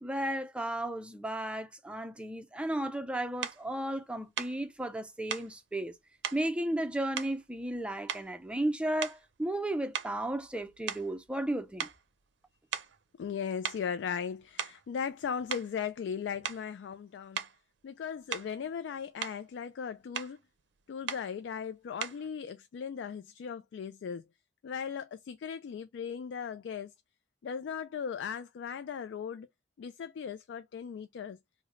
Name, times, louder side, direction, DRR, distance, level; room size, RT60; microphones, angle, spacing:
voice 1, 0.0-5.9 6.3-11.9, right 1 dB, 5° right, 0.4 m, -34 dB
sound 1, 3.4-3.6 4.4-4.6 5.3-5.5 6.2-6.5 7.2-7.8 8.1-8.5 9.0-9.3 9.9-11.5 11.8-12.0 12.7-13.0 13.6-13.9 14.4-14.9 15.5-15.7 16.4-16.7 17.3-17.6 18.3-18.6 19.0-19.4 20.1-20.4 21.1-21.3 22.0-22.3, right 8 dB, 70° right, 0.5 m, -38 dB
voice 2, 13.2-17.4 17.8-20.4 20.9-24.2 24.6-26.9 27.4-29.5 29.8-31.4, left 7 dB, 75° left, 0.3 m, -37 dB
3.1 x 2.0 x 3.6 m
head